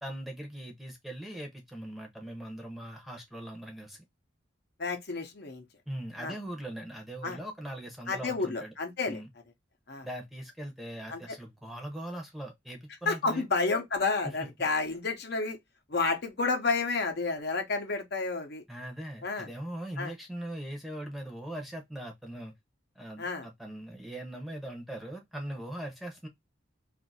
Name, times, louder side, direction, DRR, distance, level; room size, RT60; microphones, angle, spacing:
voice 1, 0.0-4.0 5.9-8.7 9.1-9.3 10.0-13.4 18.7-22.5 23.0-26.3, right 1 dB, ahead, 0.8 m, -40 dB
voice 2, 4.8-5.6 6.2-6.4 7.2-7.4 8.1-9.2 9.9-10.1 11.1-11.2 13.1-15.6 15.9-18.6 19.2-19.5 20.0-20.1 23.2-23.5, left 3 dB, 55° left, 0.8 m, -30 dB
2.7 x 2.5 x 4.0 m
head